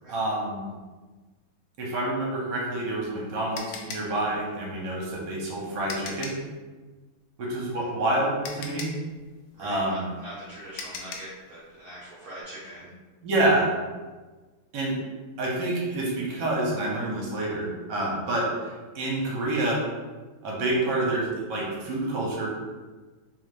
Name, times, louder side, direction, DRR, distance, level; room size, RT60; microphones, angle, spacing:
voice 1, 0.1-0.7 1.8-6.3 7.4-8.9 9.6-10.0 13.2-13.7 14.7-14.9 15.4-18.5 18.9-19.8 20.4-22.5, right 2 dB, 65° right, -4 dB, 1.4 m, -27 dB
sound 1, 2.6-6.5 7.9-8.0 8.4-11.4, left 5 dB, 75° left, 1.3 m, -40 dB
voice 2, 9.5-12.9, right 1 dB, 45° right, -9 dB, 1.2 m, -42 dB
3.8 x 2.7 x 3.2 m, 1.3 s
omnidirectional pair, 2.3 m